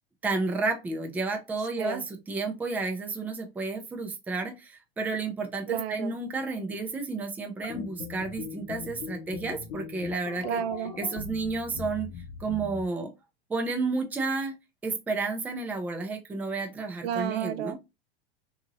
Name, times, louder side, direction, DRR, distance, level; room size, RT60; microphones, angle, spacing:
voice 1, 0.2-10.6 11.0-12.1 12.4-13.1 13.5-14.5 14.8-17.8, right 3 dB, 5° right, 0.4 m, -31 dB
voice 2, 5.7-6.2 10.4-10.9 17.0-17.8, right 9 dB, 70° right, 0.5 m, -31 dB
sound 1, 7.6-12.9, left 6 dB, 55° left, 0.7 m, -40 dB
2.8 x 2.6 x 2.6 m
hypercardioid pair, 115°, 32 cm